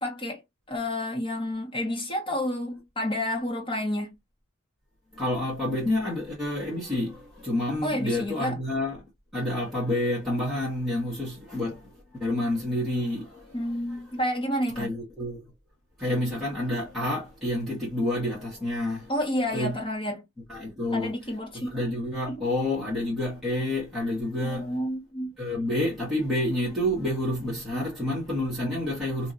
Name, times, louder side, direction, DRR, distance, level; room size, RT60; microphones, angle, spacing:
voice 1, 0.0-0.4 0.7-4.1 7.8-8.6 13.5-14.9 19.1-20.2 20.9-21.8 22.3-22.4 24.4-25.3 27.7-27.8, left 1 dB, 25° left, 1.3 m, -30 dB
voice 2, 5.1-9.0 9.3-14.0 14.7-15.5 16.0-19.1 19.5-19.8 20.5-21.1 21.5-24.7 25.4-29.3, left 1 dB, ahead, 1.2 m, -29 dB
3.0 x 2.6 x 2.6 m
head